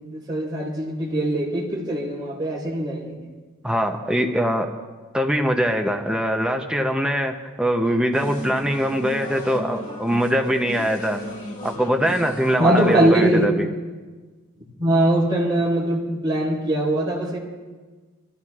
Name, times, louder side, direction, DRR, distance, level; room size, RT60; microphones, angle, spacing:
voice 1, 0.0-3.1 12.6-13.5 14.8-17.4, right 1 dB, 20° right, -7 dB, 4.0 m, -21 dB
voice 2, 3.6-4.7 5.1-11.2 11.6-13.7, equal, 5° right, 3 dB, 0.6 m, -22 dB
sound 1, 8.1-13.0, equal, 35° left, 1.8 m, -35 dB
27.5 x 14.5 x 2.4 m, 1.4 s
head